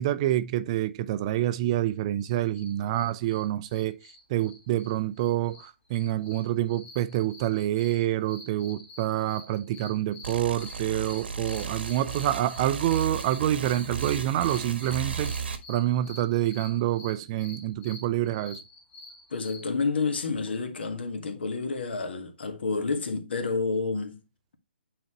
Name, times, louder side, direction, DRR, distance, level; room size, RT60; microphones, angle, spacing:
voice 1, 0.0-4.0 4.3-15.3 15.7-18.6, right 13 dB, 30° right, 0.5 m, -27 dB
sound 1, 2.2-19.7, left 2 dB, 20° left, 2.3 m, -48 dB
sound 2, 10.2-15.6, right 5 dB, 75° right, 1.3 m, -35 dB
voice 2, 19.3-24.2, left 4 dB, 70° left, 1.6 m, -29 dB
8.9 x 4.0 x 3.0 m
hypercardioid pair, 145°, 6 cm